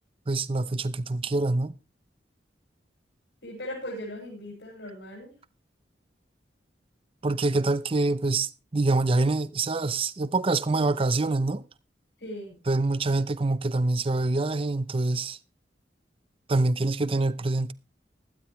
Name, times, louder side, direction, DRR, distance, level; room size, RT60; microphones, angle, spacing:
voice 1, 0.3-1.7 7.2-11.6 12.7-15.4 16.5-17.7, right 2 dB, 30° right, 0.6 m, -25 dB
voice 2, 3.4-5.3 12.2-12.6, equal, 80° left, 6.0 m, -38 dB
16.5 x 13.0 x 3.1 m
head